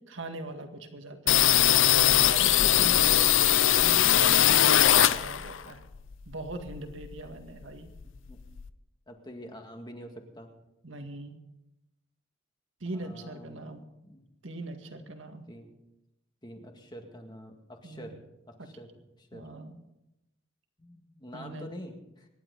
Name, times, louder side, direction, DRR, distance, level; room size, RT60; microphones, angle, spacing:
voice 1, 0.1-1.7 1.9-5.8 6.3-7.9 10.8-11.4 12.8-13.8 14.4-15.5 17.8-18.2 19.3-19.8 21.3-21.7, right 2 dB, 65° right, 5 dB, 1.9 m, -41 dB
sound 1, 1.3-5.6 5.9-7.3 7.6-7.7 8.0-8.7, left 11 dB, 65° left, 0.6 m, -21 dB
voice 2, 8.0-8.4 9.1-10.5 12.9-13.8 14.0-14.2 14.9-15.0 15.5-15.7 16.4-18.2 18.5-18.9 19.2-19.4 20.8-22.3, equal, 20° left, 3 dB, 1.9 m, -46 dB
25.5 x 11.0 x 4.0 m, 0.90 s
head